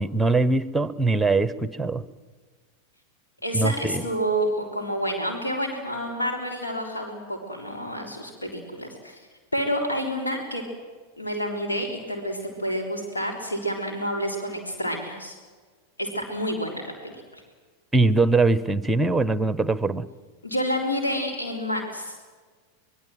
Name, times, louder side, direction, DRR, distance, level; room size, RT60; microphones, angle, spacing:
voice 1, 0.0-2.0 3.5-4.0 17.9-20.1, right 3 dB, 5° right, 17 dB, 1.0 m, -22 dB
voice 2, 3.4-9.2 9.5-10.6 11.2-15.4 16.0-17.4 20.4-22.2, equal, 80° left, 1 dB, 3.8 m, -29 dB
24.5 x 21.5 x 7.8 m, 1.5 s
figure-of-eight pair, 90°, 0 cm